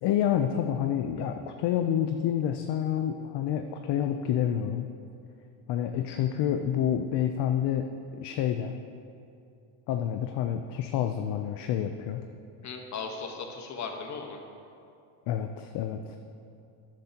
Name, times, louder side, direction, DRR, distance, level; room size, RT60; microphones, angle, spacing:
voice 1, 0.0-4.9 5.7-7.9 8.1-8.7 9.9-12.2 15.3-16.2, left 10 dB, 55° left, 6 dB, 0.6 m, -28 dB
voice 2, 12.6-14.4, left 5 dB, 35° left, 3 dB, 1.2 m, -37 dB
13.0 x 10.0 x 2.9 m, 2.6 s
cardioid pair, 130°, 50 cm